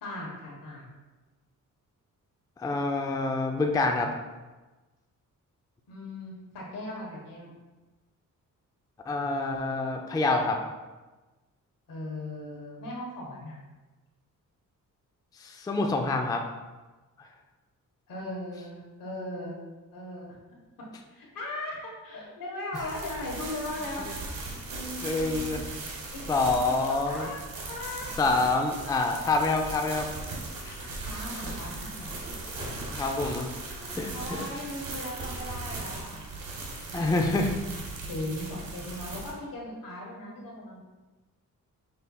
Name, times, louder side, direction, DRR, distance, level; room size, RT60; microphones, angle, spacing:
voice 1, 0.0-0.8 5.9-7.5 11.9-13.6 18.1-19.5 19.9-20.4 21.1-24.1 24.7-25.4 26.1-28.1 30.7-31.7 32.5-32.7 33.6-36.4 36.9-37.3 38.0-40.8, left 1 dB, 80° left, -2 dB, 1.2 m, -38 dB
voice 2, 2.6-4.1 9.1-10.6 15.4-16.4 25.0-25.6 26.3-27.3 28.2-30.1 30.6-30.8 32.9-33.5 33.9-34.4 36.9-37.5, left 3 dB, 10° left, 3 dB, 0.3 m, -27 dB
sound 1, 22.7-39.3, right 2 dB, 80° right, 1.1 m, -38 dB
5.6 x 3.3 x 2.2 m, 1.2 s
cardioid pair, 90°, 33 cm